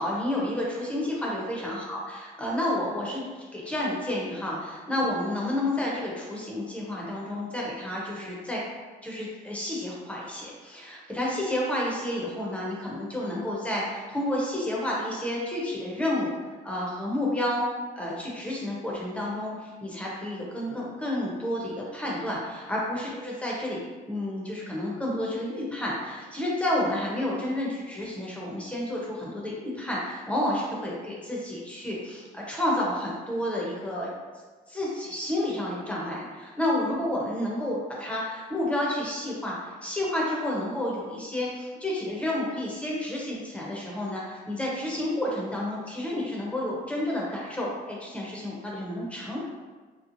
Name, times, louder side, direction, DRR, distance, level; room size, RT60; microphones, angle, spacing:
voice 1, 0.0-2.0 2.4-3.3 3.5-8.6 9.0-16.3 16.6-17.7 17.9-23.8 24.1-34.1 34.7-49.5, left 1 dB, 5° left, -4 dB, 0.7 m, -30 dB
2.9 x 2.0 x 2.5 m, 1.4 s
cardioid pair, 110°, 17 cm